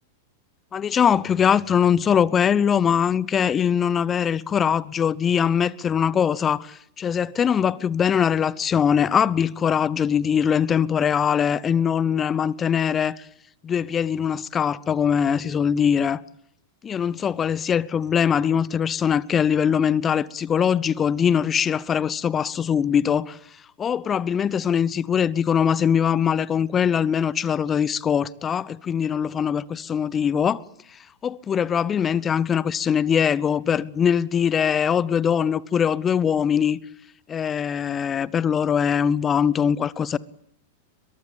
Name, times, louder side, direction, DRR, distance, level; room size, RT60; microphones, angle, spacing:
voice 1, 0.7-13.3 13.6-16.2 16.8-23.4 23.8-30.6 31.2-36.8 37.3-40.2, left 8 dB, 25° left, 0.9 m, -22 dB
22.5 x 22.5 x 8.9 m
figure-of-eight pair, 95°, 0 cm